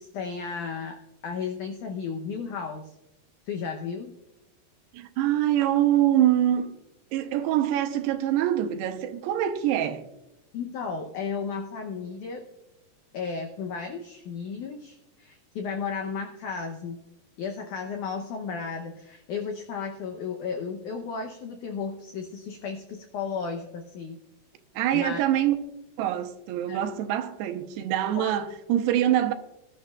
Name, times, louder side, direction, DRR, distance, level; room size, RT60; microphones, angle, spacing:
voice 1, 0.0-2.9 3.4-4.1 10.5-12.5 13.1-17.0 17.4-24.2 24.9-25.2 26.7-26.8 28.1-28.3, left 5 dB, 85° left, 1.7 m, -34 dB
voice 2, 4.9-6.7 7.1-10.0 24.8-25.6 26.0-29.3, right 12 dB, 85° right, 2.9 m, -24 dB
19.5 x 11.5 x 2.4 m
omnidirectional pair, 4.8 m